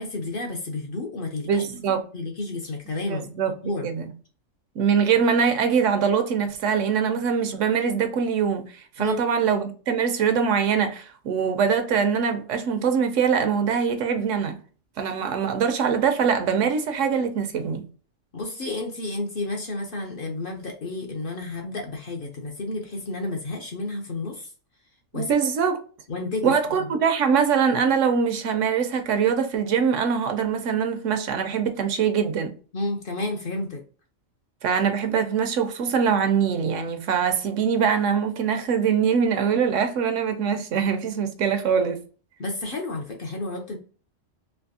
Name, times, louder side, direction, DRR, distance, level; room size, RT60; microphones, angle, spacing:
voice 1, 0.0-1.6 2.1-3.3 3.6-3.9 9.0-9.2 18.3-24.5 25.1-25.3 26.1-26.9 32.7-33.8 42.4-43.8, left 2 dB, 55° left, 0.7 m, -31 dB
voice 2, 1.5-2.0 3.1-3.5 3.8-4.1 4.8-14.6 15.0-17.8 25.1-25.8 26.4-32.5 34.6-42.0, right 6 dB, 75° right, 1.0 m, -23 dB
3.4 x 2.6 x 2.6 m
omnidirectional pair, 1.3 m